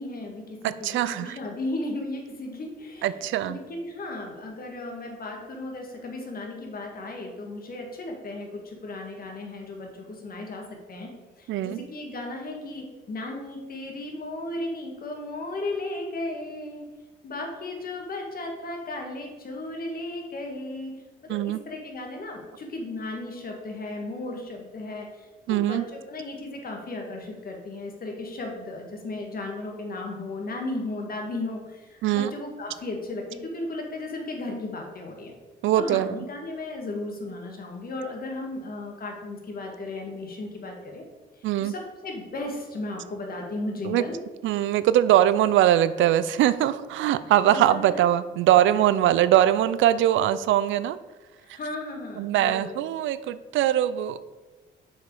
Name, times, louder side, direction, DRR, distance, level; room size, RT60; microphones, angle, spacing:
voice 1, 0.0-11.1 11.4-16.9 17.2-20.9 21.2-35.3 35.8-41.0 41.4-44.1 47.5-48.0 51.4-52.8, left 2 dB, 50° left, 1 dB, 1.8 m, -35 dB
voice 2, 0.6-1.4 3.0-3.6 11.5-11.8 21.3-21.6 25.5-25.8 32.0-32.3 35.6-36.1 41.4-41.7 43.8-44.0 44.4-51.0 52.2-54.2, right 12 dB, 80° right, 14 dB, 0.4 m, -22 dB
6.7 x 4.9 x 4.7 m, 1.2 s
cardioid pair, 90°, 20 cm